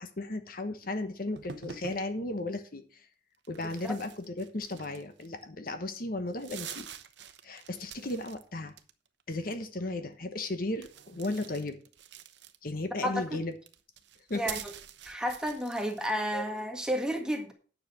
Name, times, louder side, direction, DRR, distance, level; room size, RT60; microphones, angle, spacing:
voice 1, 0.0-3.0 3.5-6.9 7.4-8.7 9.3-11.8 12.6-13.5 14.3-14.4 16.3-16.4, left 2 dB, 55° left, 8 dB, 1.1 m, -35 dB
sound 1, 1.4-2.0 3.4-5.4 5.9-6.0 6.3-8.4 8.7-9.2 10.8-12.8 13.5-16.2, right 8 dB, 80° right, 0.9 m, -46 dB
voice 2, 13.0-13.4 14.3-14.7 15.0-17.5, equal, 5° right, 3 dB, 1.8 m, -32 dB
9.7 x 6.7 x 6.1 m, 0.39 s
head